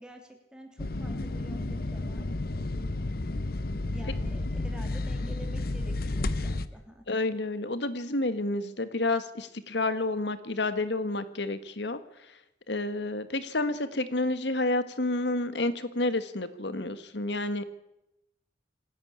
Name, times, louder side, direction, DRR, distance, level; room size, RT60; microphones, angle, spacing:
voice 1, 0.0-2.3 3.9-7.0, equal, 5° right, 3 dB, 3.1 m, -47 dB
sound 1, 0.8-6.7, left 2 dB, 55° left, 0.9 m, -32 dB
voice 2, 7.1-12.0 12.7-17.6, left 2 dB, 70° left, 12 dB, 1.6 m, -30 dB
27.0 x 11.0 x 8.8 m, 0.88 s
head